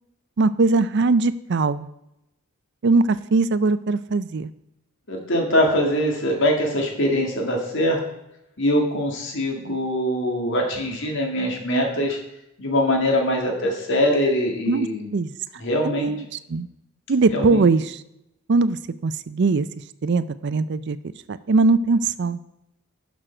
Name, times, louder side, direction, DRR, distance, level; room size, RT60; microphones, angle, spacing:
voice 1, 0.4-1.9 2.8-4.5 14.7-14.9 15.1-15.3 15.8-16.7 17.1-18.0 18.5-18.8 19.0-19.7 20.0-21.0 21.3-22.4, right 3 dB, 55° right, 15 dB, 0.5 m, -20 dB
voice 2, 5.1-8.0 8.6-12.2 12.6-15.1 15.6-16.1 17.3-17.7, equal, 60° left, 1 dB, 1.9 m, -22 dB
11.0 x 6.3 x 4.4 m, 0.85 s
head